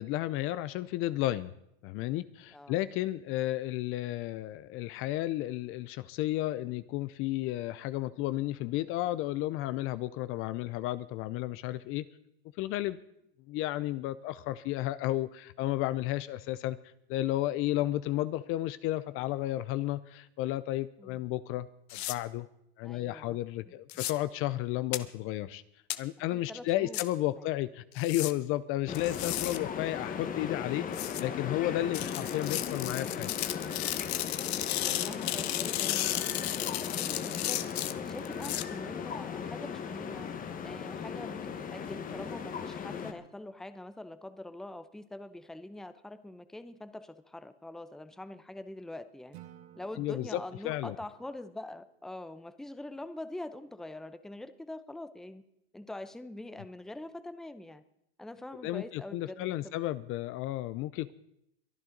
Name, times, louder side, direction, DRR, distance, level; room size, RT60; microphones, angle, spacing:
voice 1, 0.0-1.5 1.8-12.1 12.6-13.0 13.5-16.8 17.1-22.5 22.8-25.6 26.0-33.3 50.0-50.9 58.6-61.1, left 15 dB, 45° left, 15 dB, 0.5 m, -33 dB
voice 2, 21.0-21.3 22.8-23.4 23.9-24.1 26.3-27.0 27.4-27.5 34.4-40.3 40.6-49.4 49.8-55.4 55.7-57.8 58.2-60.0, left 1 dB, ahead, 12 dB, 0.7 m, -44 dB
sound 1, 21.9-22.1 23.9-24.1 24.9-25.0 25.9-26.0 26.9-27.0 28.0-28.3 28.9-29.6 30.9-31.2 31.9-38.6, left 14 dB, 80° left, 0.9 m, -34 dB
sound 2, 28.9-43.1, left 7 dB, 25° left, 1.3 m, -37 dB
Acoustic guitar / Strum, 49.3-52.5, right 12 dB, 80° right, 1.8 m, -56 dB
23.0 x 10.5 x 3.9 m, 0.79 s
supercardioid pair, 120°, 31 cm